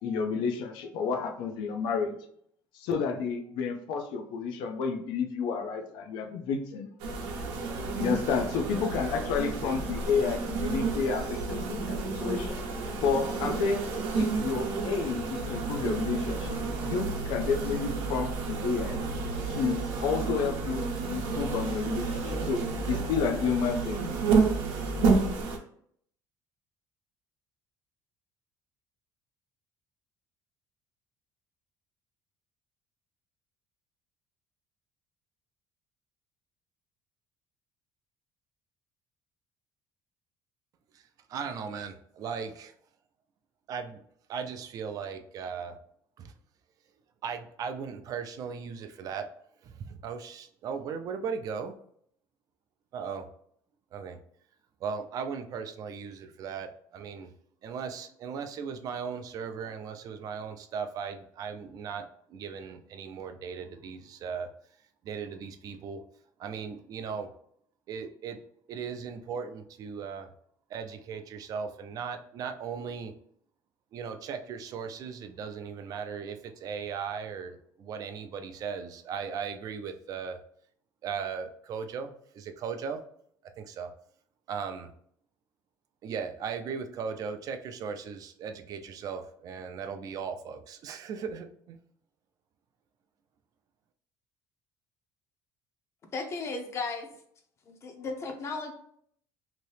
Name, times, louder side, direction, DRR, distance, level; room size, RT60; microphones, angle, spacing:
voice 1, 0.0-2.2 2.7-6.9 8.0-12.6 13.0-13.8 14.1-19.0 19.5-20.8 21.1-24.1, left 5 dB, 80° left, 5 dB, 0.5 m, -30 dB
sound 1, 7.0-25.6, right 4 dB, 85° right, 0.7 m, -31 dB
sound 2, 15.4-25.1, right 7 dB, 65° left, 1.1 m, -39 dB
voice 2, 41.3-42.7 43.7-44.0 44.3-45.8 46.2-46.3 47.2-49.3 49.6-51.8 52.9-53.3 53.9-54.2 54.8-57.3 57.6-64.5 65.0-66.0 66.4-67.3 67.9-68.4 68.7-70.3 70.7-73.1 73.9-80.4 81.0-83.0 83.6-83.9 84.5-84.9 86.0-91.8, right 6 dB, 50° right, 7 dB, 0.4 m, -37 dB
voice 3, 96.1-97.1 97.7-98.7, left 4 dB, 35° left, 4 dB, 0.6 m, -35 dB
2.9 x 2.7 x 3.2 m, 0.64 s
cardioid pair, 135°, 8 cm